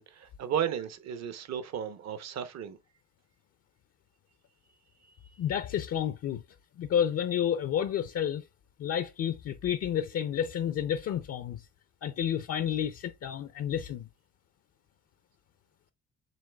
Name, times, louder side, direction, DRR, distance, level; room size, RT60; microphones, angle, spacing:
voice 1, 0.0-2.8, right 9 dB, 60° right, 0.8 m, -34 dB
voice 2, 5.4-6.4 6.8-8.5 8.8-11.7 12.0-14.1, left 9 dB, 50° left, 0.5 m, -30 dB
7.4 x 3.0 x 2.2 m
cardioid pair, 90°, 30 cm